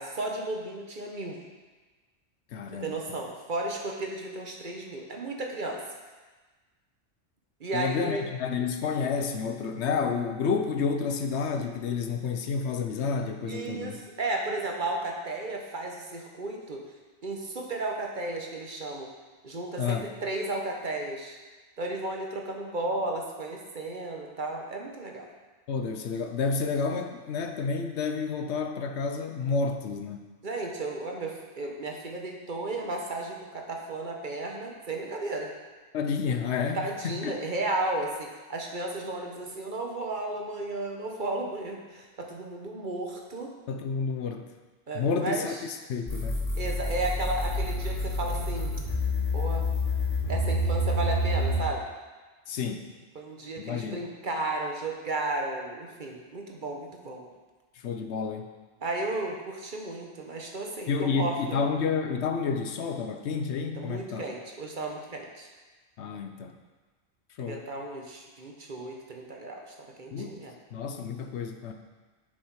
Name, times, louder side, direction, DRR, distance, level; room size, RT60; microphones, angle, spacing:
voice 1, 0.0-1.4 2.7-5.8 7.6-8.3 13.5-16.8 17.2-19.1 19.4-21.4 21.8-25.2 30.4-35.5 36.7-43.5 44.9-45.6 46.6-48.7 49.3-49.6 50.3-51.9 53.1-57.3 58.8-61.6 63.8-65.5 67.5-70.5, right 2 dB, 45° right, 1 dB, 1.0 m, -34 dB
voice 2, 2.5-3.2 7.7-14.0 19.8-20.1 25.7-30.2 35.9-37.4 43.7-44.5 44.9-46.4 52.5-52.9 53.6-54.1 57.8-58.5 60.9-64.2 66.0-66.6 67.4-67.6 70.1-70.4 70.7-71.7, left 5 dB, 70° left, 6 dB, 0.9 m, -30 dB
sound 1, 46.1-51.6, left 1 dB, 50° left, 2.3 m, -28 dB
7.3 x 6.5 x 4.7 m, 1.3 s
omnidirectional pair, 1.2 m